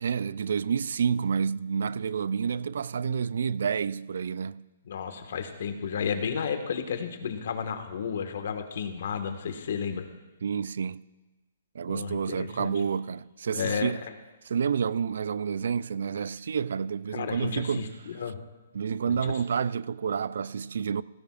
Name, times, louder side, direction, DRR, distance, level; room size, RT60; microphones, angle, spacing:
voice 1, 0.0-4.6 10.4-11.0 11.7-14.0 14.5-17.9 18.7-21.0, right 6 dB, 70° right, 0.4 m, -29 dB
voice 2, 4.9-10.0 11.9-12.7 13.5-13.9 17.1-18.4 19.1-19.3, left 6 dB, 65° left, 1.6 m, -32 dB
17.0 x 16.0 x 2.5 m
hypercardioid pair, 140°, 0 cm